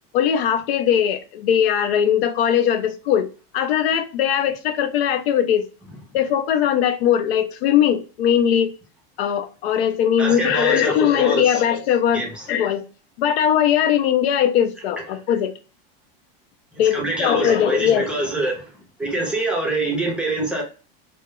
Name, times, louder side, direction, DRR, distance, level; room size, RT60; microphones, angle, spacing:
voice 1, 0.1-5.7 6.1-8.7 9.2-12.8 13.2-15.5 16.8-18.1, left 9 dB, 85° left, 0.5 m, -20 dB
voice 2, 10.2-11.6 12.1-12.5 16.9-18.6 19.0-20.6, right 2 dB, 5° right, 0.6 m, -25 dB
2.2 x 2.0 x 2.9 m
supercardioid pair, 135°, 30 cm